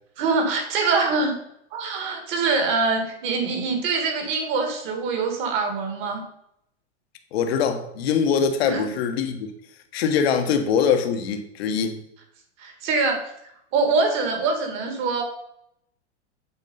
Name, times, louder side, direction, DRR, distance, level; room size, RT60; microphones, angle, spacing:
voice 1, 0.2-1.4 1.7-6.2 8.6-8.8 12.6-13.2 13.7-15.2, right 4 dB, 35° right, 1.8 m, -24 dB
voice 2, 7.3-9.5 9.9-12.0, left 6 dB, 60° left, 1.3 m, -23 dB
8.3 x 4.5 x 5.4 m
supercardioid pair, 155°, 35 cm